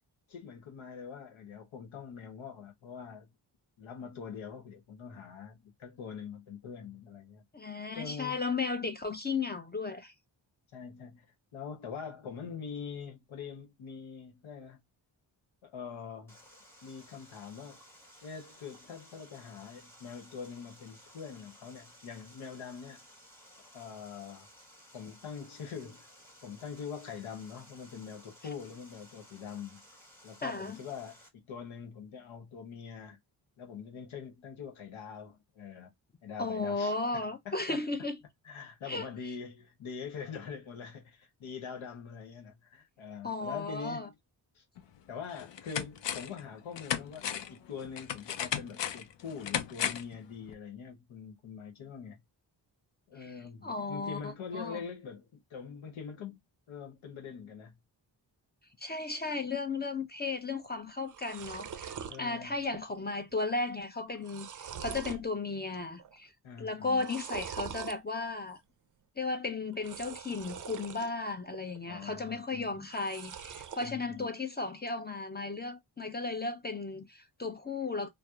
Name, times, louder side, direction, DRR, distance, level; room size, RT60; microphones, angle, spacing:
voice 1, 0.3-3.3 3.8-7.4 7.9-8.4 10.7-11.2 11.5-14.8 15.6-16.3 16.8-17.8 18.2-23.0 23.7-24.5 24.9-26.1 26.4-29.8 30.2-33.2 33.6-35.9 36.2-37.0 37.4-37.9 38.4-44.1 44.5-44.6 45.1-52.2 53.1-56.4 56.7-57.7 62.1-62.6 66.4-67.0 71.9-72.9 73.8-74.3, left 6 dB, 80° left, 1.0 m, -44 dB
voice 2, 7.5-10.1 30.4-30.8 36.4-38.2 38.9-39.1 43.2-44.1 53.2-53.3 53.6-54.8 58.8-66.3 66.6-68.6 69.2-78.1, left 3 dB, 20° left, 0.6 m, -35 dB
Water, 16.3-31.3, equal, 5° left, 1.5 m, -57 dB
sound 1, 44.8-44.9 45.3-46.4 46.8-50.2 50.5-50.6, left 9 dB, 65° left, 0.6 m, -35 dB
sound 2, 60.6-60.7 61.0-62.2 62.6-63.0 63.3-63.4 64.0-65.3 65.7-66.2 66.9-68.0 69.7-71.1 71.5-72.1 72.9-73.9, right 8 dB, 40° right, 0.5 m, -43 dB
2.7 x 2.0 x 2.3 m
cardioid pair, 60°, 47 cm